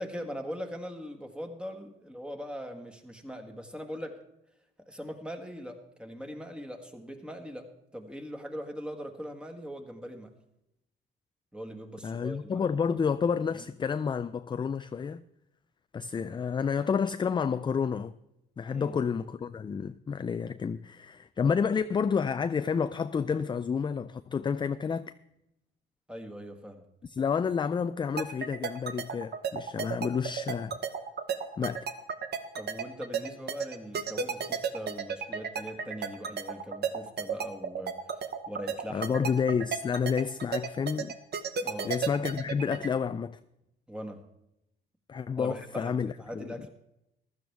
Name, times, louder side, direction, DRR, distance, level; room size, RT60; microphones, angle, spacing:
voice 1, 0.0-4.2 4.9-7.7 7.9-10.3 11.5-12.7 13.5-13.6 18.7-18.9 26.1-26.9 32.5-37.9 38.5-39.1 41.6-42.0 43.9-44.2 45.4-46.7, equal, 5° right, 1.6 m, -41 dB
voice 2, 12.0-15.2 15.9-18.1 18.6-25.1 27.1-30.8 31.6-31.9 38.9-41.2 41.8-43.4 45.1-46.5, left 6 dB, 25° left, 0.3 m, -30 dB
sound 1, 28.2-42.9, right 6 dB, 55° right, 1.0 m, -33 dB
15.0 x 12.0 x 3.5 m
cardioid pair, 90°, 20 cm